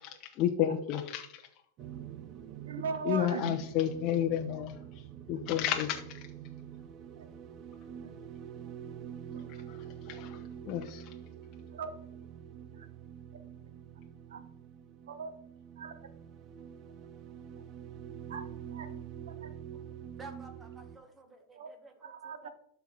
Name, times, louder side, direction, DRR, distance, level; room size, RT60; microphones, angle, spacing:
voice 1, 0.1-1.4 1.8-1.9 3.1-4.8 5.3-6.2 9.7-9.8 10.1-11.1, left 10 dB, 40° left, 3 dB, 0.9 m, -31 dB
sound 1, 1.8-21.0, right 9 dB, 35° right, 0.6 m, -46 dB
voice 2, 2.7-3.6 7.1-7.3 8.0-8.1 9.3-9.5 11.7-11.9 12.7-12.9 13.3-13.4 14.3-14.4 15.1-15.4 15.8-15.9 18.3-18.9 19.3-19.5 19.9-20.0 21.5-21.7 22.0-22.5, right 5 dB, 90° right, 10 dB, 1.1 m, -40 dB
voice 3, 20.2-21.9 22.2-22.5, right 3 dB, 15° right, 5 dB, 1.5 m, -51 dB
12.0 x 4.5 x 4.0 m, 0.69 s
supercardioid pair, 140°, 0 cm